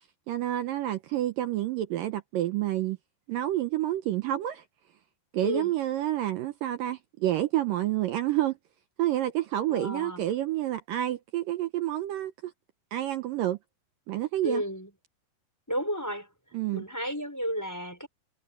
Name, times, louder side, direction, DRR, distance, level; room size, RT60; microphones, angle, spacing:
voice 1, 0.3-3.0 3.3-4.6 5.3-8.6 9.0-12.5 12.9-13.6 14.1-14.6 16.5-16.8, right 13 dB, 80° right, 2.1 m, -29 dB
voice 2, 5.4-5.8 9.7-10.3 14.4-14.9 15.7-16.3 16.7-18.1, equal, 5° left, 5.4 m, -32 dB
omnidirectional pair, 4.9 m